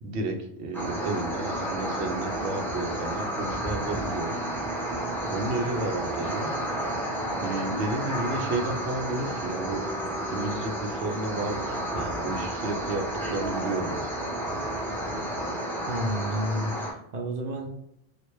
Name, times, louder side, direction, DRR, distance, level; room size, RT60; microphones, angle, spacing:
voice 1, 0.0-4.4 5.3-6.5 7.4-9.8 10.3-14.0, right 2 dB, 85° right, 4 dB, 0.9 m, -32 dB
sound 1, 0.7-16.9, right 1 dB, ahead, 0.7 m, -31 dB
voice 2, 15.9-17.7, equal, 55° right, 1 dB, 0.5 m, -30 dB
3.1 x 2.4 x 3.0 m, 0.76 s
omnidirectional pair, 1.1 m